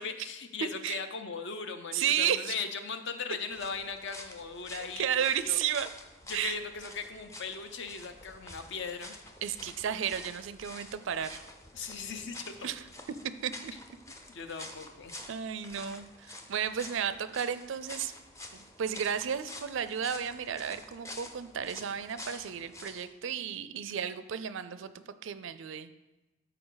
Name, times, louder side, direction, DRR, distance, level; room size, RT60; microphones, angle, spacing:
voice 1, 0.0-5.6 6.3-9.1 11.7-12.7 14.3-15.1, left 5 dB, 55° left, 8 dB, 0.7 m, -38 dB
voice 2, 0.6-1.0 1.9-2.5 4.7-5.9 6.3-6.6 9.4-11.4 12.6-12.8 13.4-13.7 15.3-18.1 18.5-25.9, right 8 dB, 60° right, 13 dB, 0.4 m, -33 dB
sound 1, 3.5-23.1, left 1 dB, 15° left, 0.6 m, -48 dB
13.0 x 4.6 x 3.9 m, 1.1 s
head